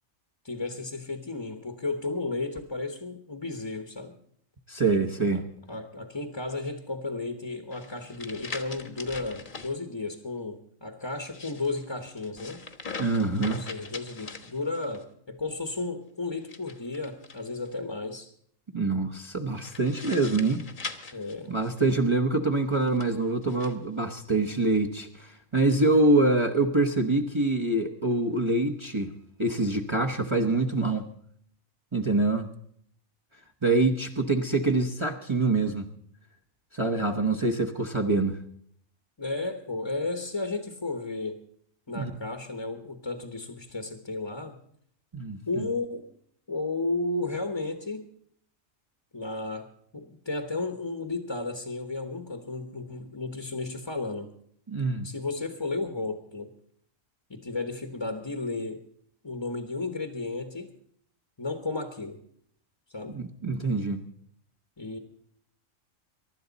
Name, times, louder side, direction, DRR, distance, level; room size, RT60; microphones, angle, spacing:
voice 1, 0.4-4.1 5.3-12.7 13.4-18.3 21.1-21.6 39.2-41.4 41.9-44.6 45.5-46.1 46.5-48.1 49.1-49.7 49.9-54.3 55.0-56.5 57.3-58.8 59.2-60.7 61.4-62.2 62.9-63.2 64.8-65.0, left 3 dB, 20° left, 5 dB, 1.1 m, -33 dB
voice 2, 4.7-5.4 13.0-13.6 18.7-20.6 21.5-29.1 29.4-31.1 31.9-32.5 33.6-35.9 36.7-38.4 41.9-42.1 45.1-45.7 54.7-55.1 63.1-64.0, right 2 dB, 25° right, 2 dB, 0.9 m, -25 dB
sound 1, 7.7-9.7 11.1-15.0 16.4-17.7 19.6-22.0 22.7-23.8, left 4 dB, 40° left, 1.3 m, -42 dB
23.5 x 11.5 x 4.1 m, 0.65 s
omnidirectional pair, 1.4 m